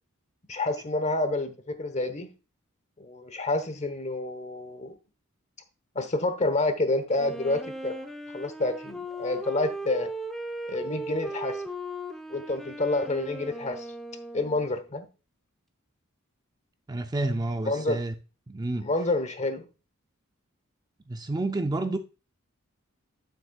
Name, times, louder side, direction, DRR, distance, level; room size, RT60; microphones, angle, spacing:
voice 1, 0.5-2.3 3.0-4.9 5.9-8.0 8.3-10.1 10.7-11.6 12.3-13.9 14.3-15.1 17.7-18.0 18.8-19.6, left 2 dB, 35° left, 1.0 m, -28 dB
Wind instrument woodwind instrument, 7.2-14.8, right 1 dB, ahead, 0.8 m, -37 dB
voice 2, 16.9-18.1 18.5-18.9 21.1-22.0, right 2 dB, 20° right, 0.4 m, -29 dB
9.1 x 7.7 x 2.3 m
head